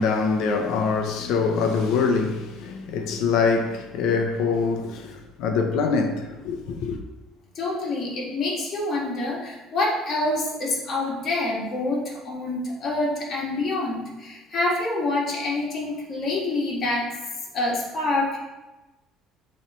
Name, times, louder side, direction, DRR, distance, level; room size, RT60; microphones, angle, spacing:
voice 1, 0.0-7.0, left 4 dB, 70° left, 0.7 m, -24 dB
voice 2, 7.5-17.1 17.5-18.4, left 2 dB, 40° left, 2.0 m, -26 dB
7.0 x 3.2 x 4.5 m
cardioid pair, 130°, 0 cm